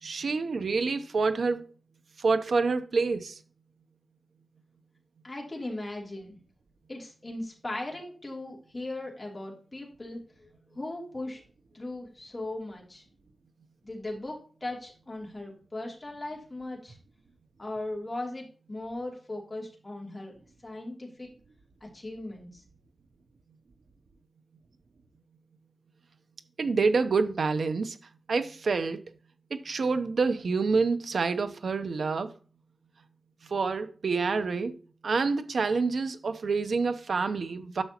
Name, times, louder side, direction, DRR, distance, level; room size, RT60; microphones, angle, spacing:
voice 1, 0.0-1.6 2.2-3.4 26.6-28.0 28.3-29.0 29.5-32.3 33.4-37.8, right 4 dB, 65° right, 0.8 m, -27 dB
voice 2, 5.2-6.4 6.9-10.5 10.7-11.4 11.7-13.0 13.8-17.0 17.6-20.3 20.6-21.3 21.8-22.6, left 2 dB, 25° left, 3.0 m, -38 dB
9.9 x 6.8 x 2.9 m
wide cardioid pair, 135°, 0 cm